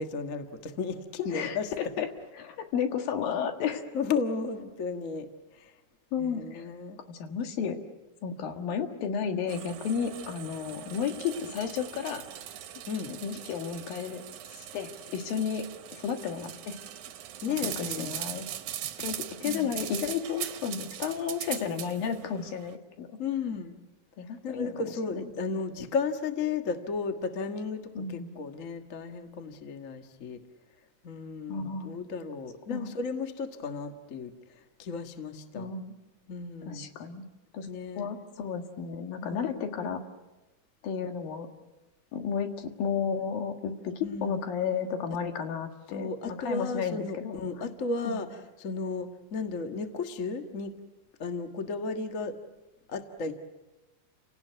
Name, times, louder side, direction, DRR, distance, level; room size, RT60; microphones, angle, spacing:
voice 1, 0.0-1.7 3.9-5.3 5.5-5.7 6.2-7.0 12.9-13.1 17.4-18.2 19.4-19.8 23.2-23.8 24.4-30.4 31.0-34.3 34.8-35.7 36.3-36.9 37.7-38.1 39.2-39.6 44.0-44.4 45.9-50.7 51.2-52.4 52.9-53.3, left 4 dB, 45° left, 6 dB, 1.0 m, -34 dB
voice 2, 1.2-2.1 2.4-3.8 6.1-6.7 7.1-7.8 8.2-12.2 13.1-14.3 14.5-16.8 17.5-18.5 19.0-23.2 24.2-24.9 25.5-25.6 28.0-28.3 31.5-32.0 32.7-32.9 35.5-35.9 36.6-37.2 37.5-37.7 37.9-40.0 40.8-41.5 42.1-47.7 48.1-48.2, left 7 dB, 80° left, 6 dB, 3.5 m, -33 dB
sound 1, 9.5-22.8, right 11 dB, 65° right, 2.3 m, -40 dB
29.5 x 18.0 x 9.3 m, 1.1 s
omnidirectional pair, 4.0 m